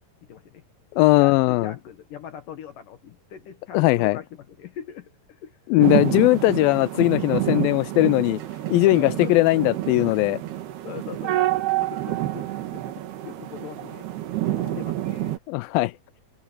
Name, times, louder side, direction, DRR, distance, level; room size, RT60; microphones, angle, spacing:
voice 1, 0.3-0.6 1.2-5.5 8.8-9.4 10.8-12.9 13.2-14.1 14.3-15.3, left 9 dB, 65° left, 2.7 m, -40 dB
voice 2, 1.0-1.7 3.7-4.2 5.7-8.4 8.7-10.4 15.5-15.9, left 19 dB, 80° left, 2.1 m, -19 dB
sound 1, 5.8-15.4, right 15 dB, 80° right, 3.7 m, -28 dB
omnidirectional pair, 4.5 m